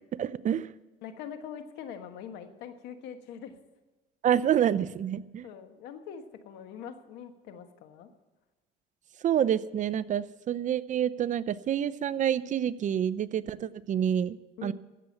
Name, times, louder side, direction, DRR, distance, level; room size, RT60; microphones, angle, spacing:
voice 1, 0.1-0.7 4.2-5.5 9.2-14.4 14.6-14.7, right 9 dB, 45° right, 17 dB, 0.6 m, -28 dB
voice 2, 1.0-3.6 5.4-8.1 14.6-14.7, left 8 dB, 90° left, 8 dB, 1.4 m, -43 dB
16.0 x 7.1 x 7.9 m, 1.2 s
cardioid pair, 110°, 17 cm